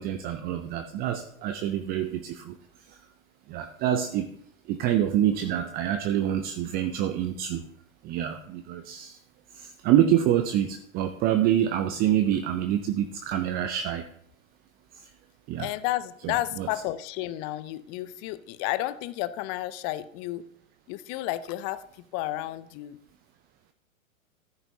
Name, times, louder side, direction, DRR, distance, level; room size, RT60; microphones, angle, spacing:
voice 1, 0.0-2.6 2.9-3.0 3.5-4.3 4.7-7.6 8.0-9.2 9.5-14.0 14.9-15.1 15.5-15.7 16.6-16.7, right 11 dB, 25° right, 9 dB, 0.5 m, -26 dB
voice 2, 15.6-20.5 20.9-23.0, left 15 dB, 25° left, 15 dB, 0.5 m, -32 dB
13.5 x 10.0 x 2.8 m, 0.70 s
figure-of-eight pair, 105°, 41 cm